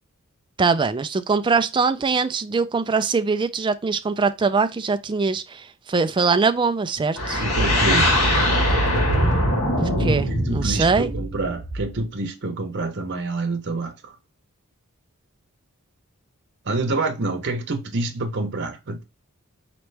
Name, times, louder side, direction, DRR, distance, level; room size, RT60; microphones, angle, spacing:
voice 1, 0.6-7.4 9.8-11.1, right 4 dB, 20° right, 0.3 m, -22 dB
sound 1, 7.2-12.0, equal, 70° left, 1.8 m, -21 dB
voice 2, 7.4-8.1 10.5-14.1 16.7-19.0, right 2 dB, 50° right, 0.8 m, -27 dB
4.4 x 3.0 x 3.3 m
head